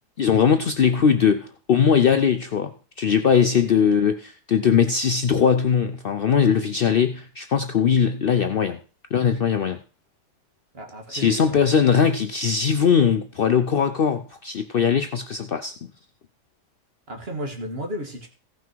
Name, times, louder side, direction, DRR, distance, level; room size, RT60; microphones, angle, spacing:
voice 1, 0.2-8.8 9.1-9.8 11.1-15.7, left 7 dB, 90° left, 8 dB, 0.5 m, -20 dB
voice 2, 10.7-11.7 17.1-18.3, equal, 35° right, 3 dB, 2.0 m, -34 dB
15.5 x 5.9 x 4.6 m, 0.36 s
omnidirectional pair, 1.7 m